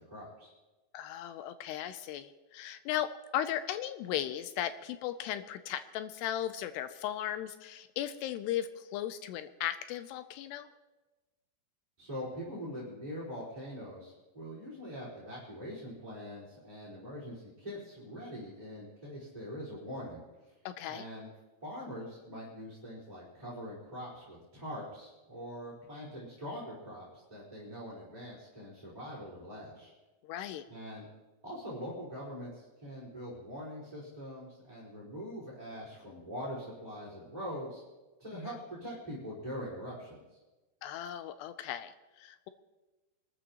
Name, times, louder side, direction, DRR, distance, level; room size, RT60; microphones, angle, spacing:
voice 1, 0.1-0.5 12.0-20.5 20.9-21.3 21.6-29.9 30.7-31.1 31.4-37.8 38.2-40.4, equal, 10° right, -7 dB, 4.0 m, -43 dB
voice 2, 0.9-10.7 20.7-21.1 30.2-30.7 38.4-38.5 40.8-42.5, left 11 dB, 80° left, 11 dB, 2.5 m, -37 dB
24.5 x 13.5 x 3.0 m, 1.2 s
omnidirectional pair, 5.1 m